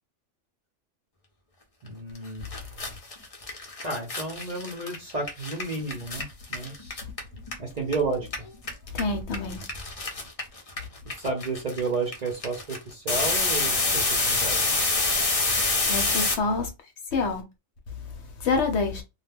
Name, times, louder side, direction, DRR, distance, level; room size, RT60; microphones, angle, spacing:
voice 1, 1.8-2.5 3.8-7.0 7.6-8.5 11.2-14.7, right 3 dB, 45° right, 0.6 m, -32 dB
sound 1, 2.2-2.3 2.4-7.9 8.2-16.3, left 3 dB, 40° left, 0.6 m, -27 dB
voice 2, 8.9-9.6 15.9-16.7 17.1-17.4 18.2-19.0, left 4 dB, 65° left, 0.9 m, -27 dB
2.2 x 2.2 x 3.3 m
omnidirectional pair, 1.3 m